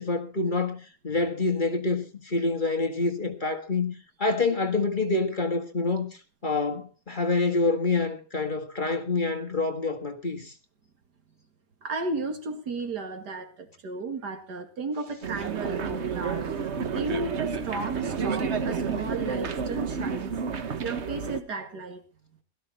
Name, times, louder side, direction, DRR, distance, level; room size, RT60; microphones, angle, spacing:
voice 1, 0.0-3.9 4.2-6.1 6.4-10.5, left 3 dB, 30° left, 1.8 m, -27 dB
voice 2, 11.8-16.4 16.9-20.3 20.8-22.0, right 3 dB, 80° right, 2.6 m, -34 dB
sound 1, 15.2-21.4, right 5 dB, 50° right, 1.2 m, -30 dB
17.0 x 13.5 x 4.1 m
omnidirectional pair, 1.7 m